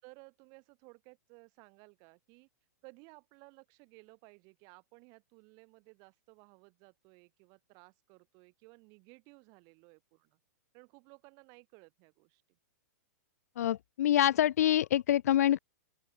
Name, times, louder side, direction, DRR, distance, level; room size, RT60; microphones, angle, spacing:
voice 1, 0.0-2.5 2.8-10.4 10.7-12.6, right 32 dB, 40° right, 5.5 m, -58 dB
voice 2, 13.6-15.6, left 11 dB, 65° left, 0.4 m, -26 dB
open air
hypercardioid pair, 110°, 9 cm